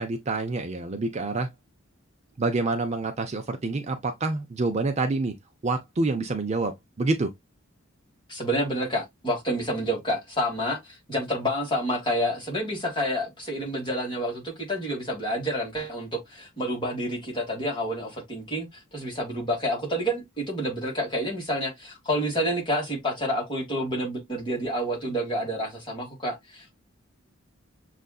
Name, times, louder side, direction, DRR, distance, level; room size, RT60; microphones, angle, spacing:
voice 1, 0.0-1.5 2.4-5.4 5.6-7.3, right 3 dB, 30° right, 0.4 m, -27 dB
voice 2, 8.3-26.8, equal, 25° left, 1.7 m, -29 dB
6.5 x 2.5 x 2.3 m
head